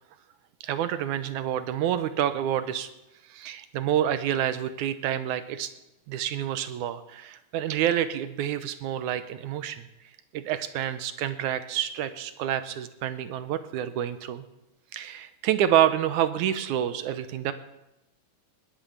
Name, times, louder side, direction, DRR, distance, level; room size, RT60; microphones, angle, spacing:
voice 1, 0.6-2.9 3.3-5.7 6.1-9.9 10.3-14.4 14.9-17.5, right 10 dB, 75° right, 12 dB, 2.1 m, -28 dB
20.5 x 9.1 x 7.2 m, 0.93 s
omnidirectional pair, 3.7 m